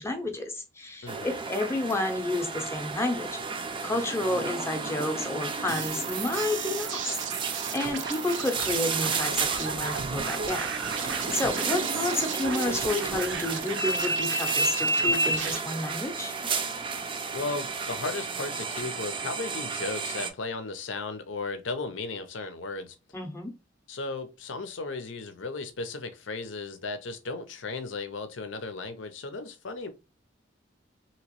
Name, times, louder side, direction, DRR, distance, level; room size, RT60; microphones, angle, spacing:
voice 1, 0.0-3.4 3.8-7.2 7.7-10.7 11.3-16.3 23.1-23.5, left 2 dB, 15° left, 0.6 m, -30 dB
voice 2, 1.0-1.4 11.3-11.6 17.3-23.0 23.9-29.9, left 3 dB, 90° left, 0.6 m, -35 dB
sound 1, 1.1-20.3, right 3 dB, 25° right, 0.4 m, -32 dB
sound 2, 5.7-15.6, right 6 dB, 75° right, 0.6 m, -35 dB
3.0 x 2.9 x 2.9 m
head